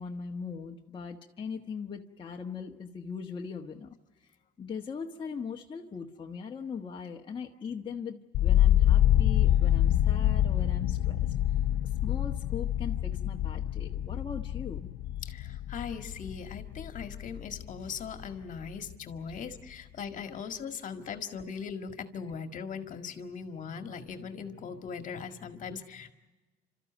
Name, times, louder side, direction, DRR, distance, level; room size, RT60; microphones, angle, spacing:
voice 1, 0.0-3.9 4.6-11.3 12.0-14.9 20.3-20.4, left 6 dB, 30° left, 0 dB, 1.4 m, -40 dB
sound 1, 8.3-18.3 18.6-19.3, left 12 dB, 80° left, 0.7 m, -26 dB
voice 2, 15.2-26.1, left 6 dB, 50° left, 7 dB, 1.9 m, -40 dB
30.0 x 13.5 x 9.1 m, 1.2 s
cardioid pair, 110°, 17 cm